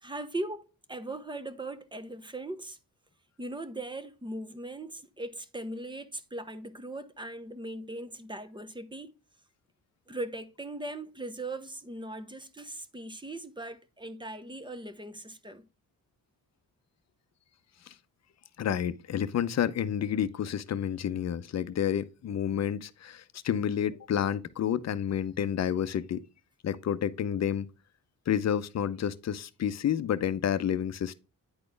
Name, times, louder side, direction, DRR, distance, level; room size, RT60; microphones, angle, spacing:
voice 1, 0.0-2.8 3.4-9.1 10.1-15.7, right 1 dB, 15° right, 0.8 m, -39 dB
voice 2, 18.6-26.2 26.6-27.7 28.3-31.1, left 9 dB, 50° left, 0.6 m, -30 dB
9.7 x 4.2 x 3.3 m
cardioid pair, 105°, 34 cm